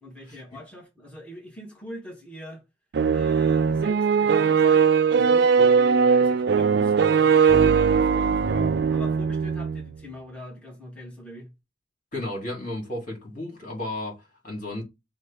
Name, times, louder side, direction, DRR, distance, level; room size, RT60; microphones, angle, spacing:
voice 1, 0.0-2.6 3.1-11.5, left 1 dB, 5° left, 1.1 m, -42 dB
sound 1, 2.9-9.9, right 6 dB, 65° right, 0.4 m, -20 dB
voice 2, 12.1-14.8, left 1 dB, 50° left, 1.9 m, -33 dB
6.2 x 2.1 x 3.5 m
head